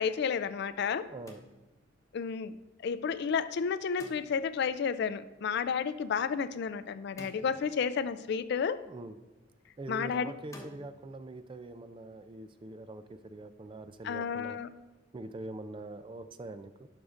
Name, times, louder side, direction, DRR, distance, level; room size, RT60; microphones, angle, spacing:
voice 1, 0.0-1.1 2.1-2.5 2.8-8.8 9.9-10.3 14.0-14.7, left 6 dB, 55° left, 14 dB, 0.3 m, -31 dB
voice 2, 0.8-1.4 8.7-9.2 9.8-14.6 15.1-16.9, right 2 dB, 25° right, 11 dB, 0.3 m, -44 dB
sound 1, 1.3-2.0 4.0-4.7 7.2-8.1 10.5-10.9, left 1 dB, 15° left, 0.9 m, -50 dB
12.0 x 6.5 x 2.5 m, 1.1 s
head